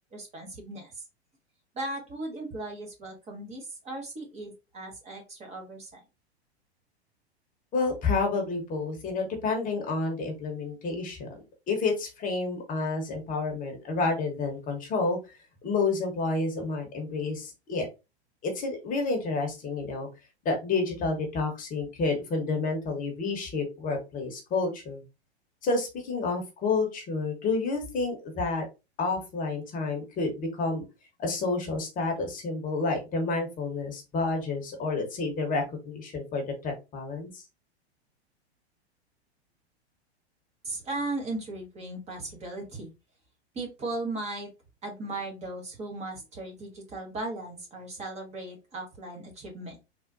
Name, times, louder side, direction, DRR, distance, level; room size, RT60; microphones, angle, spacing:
voice 1, 0.1-1.0 1.7-6.0 40.6-42.9 43.5-44.5 44.8-49.8, right 2 dB, 20° right, 1 dB, 0.9 m, -37 dB
voice 2, 7.7-11.4 11.7-15.4 15.6-17.9 18.4-20.1 20.4-25.0 25.6-28.6 29.0-30.8 31.2-37.4, left 3 dB, 25° left, 3 dB, 1.0 m, -29 dB
3.6 x 2.4 x 2.5 m, 0.26 s
figure-of-eight pair, 100°, 33 cm